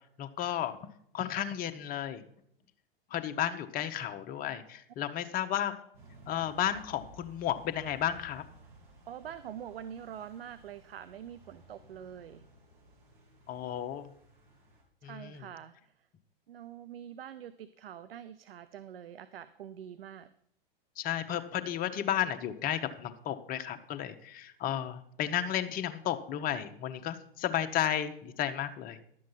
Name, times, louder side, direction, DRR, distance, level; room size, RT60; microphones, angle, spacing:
voice 1, 0.2-0.8 1.1-2.2 3.1-5.8 6.3-8.4 13.5-14.1 15.0-15.5 21.0-29.0, left 10 dB, 30° left, 8 dB, 1.0 m, -33 dB
sound 1, 5.9-14.8, right 1 dB, 60° right, 3.7 m, -56 dB
voice 2, 9.1-12.4 15.0-15.7 16.5-20.3, right 9 dB, 75° right, 14 dB, 0.6 m, -45 dB
11.5 x 7.6 x 5.6 m, 0.70 s
hypercardioid pair, 105°, 29 cm